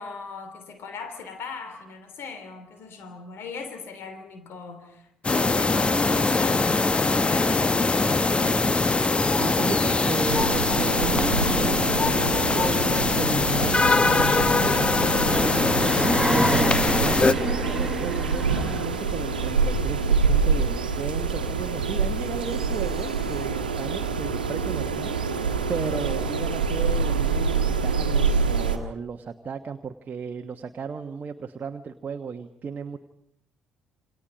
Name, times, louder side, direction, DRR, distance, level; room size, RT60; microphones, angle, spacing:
voice 1, 0.0-8.8 9.6-10.2, left 4 dB, 55° left, 3.2 m, -39 dB
sound 1, 5.2-17.3, left 3 dB, 20° left, 1.1 m, -22 dB
voice 2, 9.2-15.7 16.3-25.3 25.7-33.0, right 5 dB, 40° right, 1.3 m, -35 dB
sound 2, 10.3-28.8, right 5 dB, 85° right, 1.4 m, -26 dB
sound 3, 15.3-23.4, right 1 dB, 10° right, 1.1 m, -31 dB
28.0 x 26.0 x 5.2 m
figure-of-eight pair, 45°, 5 cm